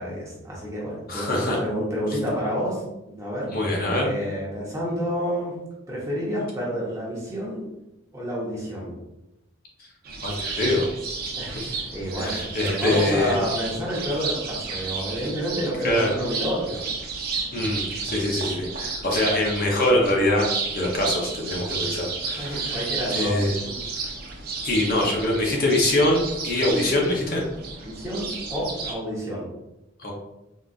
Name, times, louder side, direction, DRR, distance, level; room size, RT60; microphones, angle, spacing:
voice 1, 0.0-3.5 4.0-5.5 5.9-7.6 8.1-8.9 11.3-16.9 17.6-17.7 22.4-23.8 27.8-29.5, equal, 15° right, -5 dB, 0.7 m, -29 dB
voice 2, 1.1-1.6 2.1-2.2 3.5-4.1 9.8-9.9 10.2-10.9 11.6-11.7 12.2-13.4 15.8-16.1 17.5-20.5 20.7-22.8 23.1-23.5 24.6-27.4 30.0-30.1, left 1 dB, 45° left, -1 dB, 0.5 m, -24 dB
sound 1, 10.0-28.9, right 4 dB, 45° right, 0.5 m, -32 dB
3.8 x 2.3 x 2.3 m, 0.93 s
head